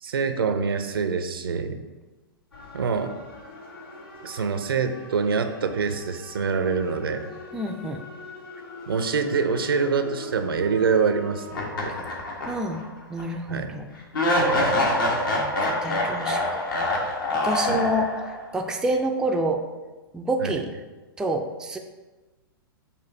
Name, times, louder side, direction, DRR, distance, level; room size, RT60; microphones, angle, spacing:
voice 1, 0.0-1.8 2.7-3.1 4.2-7.3 8.9-12.0 13.5-13.7 14.4-14.9 17.7-17.9 20.4-20.6, right 5 dB, 75° right, 8 dB, 0.6 m, -25 dB
sound 1, 2.5-11.7, left 3 dB, 85° left, 2.0 m, -42 dB
voice 2, 7.5-8.0 12.5-14.0 15.3-16.7 17.4-18.1 18.5-19.7 20.1-20.7 21.2-21.8, right 1 dB, 5° right, 3 dB, 0.4 m, -28 dB
sound 2, 11.5-12.8 13.2-13.3 14.1-18.4, left 1 dB, 60° left, 1.4 m, -25 dB
6.9 x 2.6 x 5.5 m, 1.2 s
figure-of-eight pair, 110°, 12 cm